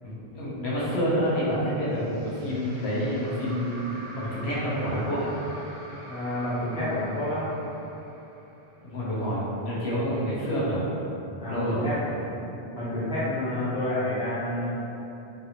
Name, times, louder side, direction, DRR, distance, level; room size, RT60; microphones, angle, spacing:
voice 1, 0.0-5.2 8.8-10.8 11.5-11.9, equal, 85° left, -8 dB, 1.1 m, -28 dB
sound 1, 1.9-9.2, right 1 dB, 65° right, 0.9 m, -45 dB
voice 2, 6.0-7.5 11.4-12.4 12.7-14.7, left 1 dB, 5° right, -12 dB, 0.7 m, -29 dB
3.3 x 2.5 x 2.8 m, 2.9 s
omnidirectional pair, 1.1 m